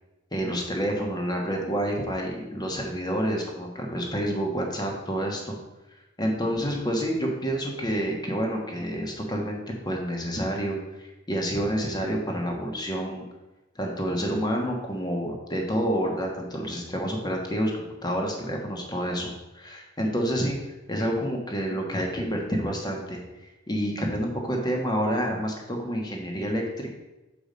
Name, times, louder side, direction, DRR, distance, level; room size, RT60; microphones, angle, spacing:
voice 1, 0.3-5.5 6.2-9.6 9.8-13.2 13.7-23.2 23.7-26.9, equal, 20° left, 1 dB, 1.2 m, -28 dB
6.8 x 4.9 x 5.1 m, 1.0 s
head